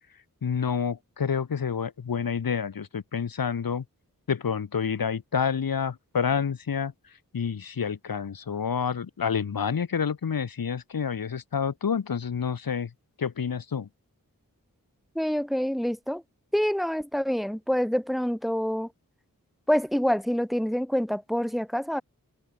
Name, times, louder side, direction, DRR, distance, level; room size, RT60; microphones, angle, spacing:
voice 1, 0.4-3.8 4.3-6.9 7.3-12.9 13.2-13.9, left 6 dB, 90° left, 1.0 m, -28 dB
voice 2, 15.1-16.2 16.5-18.9 19.7-22.0, equal, ahead, 1.3 m, -26 dB
wide cardioid pair, 55°, 34 cm